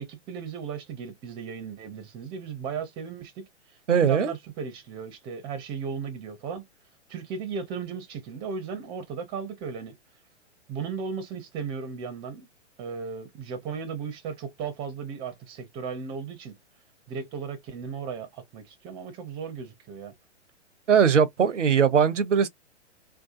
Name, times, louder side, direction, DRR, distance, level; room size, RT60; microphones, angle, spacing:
voice 1, 0.0-3.4 4.0-6.6 7.1-10.0 10.7-12.5 12.8-16.6 17.1-20.1, right 6 dB, 15° right, 0.4 m, -36 dB
voice 2, 3.9-4.3 20.9-22.5, right 7 dB, 85° right, 0.5 m, -20 dB
2.7 x 2.2 x 2.4 m
figure-of-eight pair, 110°, 35 cm